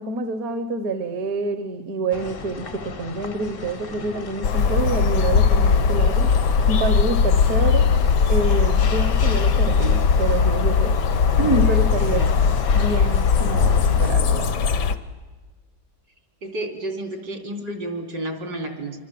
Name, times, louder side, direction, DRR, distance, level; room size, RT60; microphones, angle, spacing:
voice 1, 0.0-8.0 8.3-11.0 11.4-12.5 12.7-14.8, right 3 dB, 60° right, 9 dB, 1.5 m, -27 dB
sound 1, 2.1-14.1, left 5 dB, 45° left, 0.8 m, -35 dB
sound 2, 4.4-14.9, left 6 dB, 75° left, 1.6 m, -19 dB
voice 2, 16.4-19.0, right 1 dB, 75° right, 4 dB, 4.0 m, -31 dB
27.0 x 24.0 x 7.7 m, 1.3 s
omnidirectional pair, 1.9 m